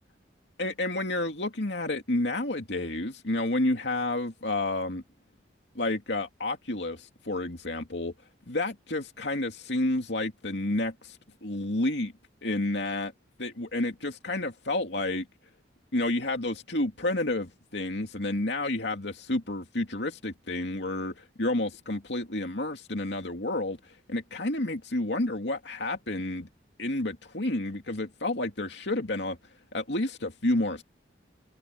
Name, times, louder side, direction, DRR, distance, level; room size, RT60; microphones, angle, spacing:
voice 1, 0.6-5.0 5.7-8.1 8.5-12.1 12.4-13.1 13.4-15.3 15.9-26.5 26.8-29.4 29.7-30.8, left 2 dB, 70° left, 2.5 m, -30 dB
head